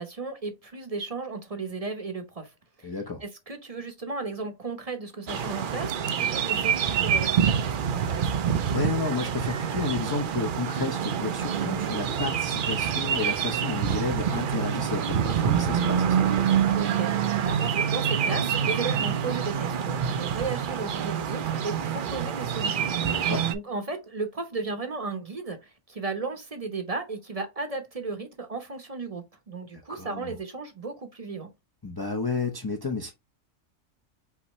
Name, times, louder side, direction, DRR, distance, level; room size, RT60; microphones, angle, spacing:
voice 1, 0.0-2.5 2.8-3.0 3.2-8.3 16.7-23.2 23.5-31.5, right 4 dB, 30° right, 0.7 m, -35 dB
voice 2, 2.8-3.2 8.7-16.5 23.0-23.5 29.9-30.3 31.8-33.1, left 3 dB, 25° left, 0.5 m, -32 dB
sound 1, 5.3-23.5, right 8 dB, 65° right, 0.5 m, -26 dB
5.6 x 2.8 x 3.0 m
omnidirectional pair, 1.4 m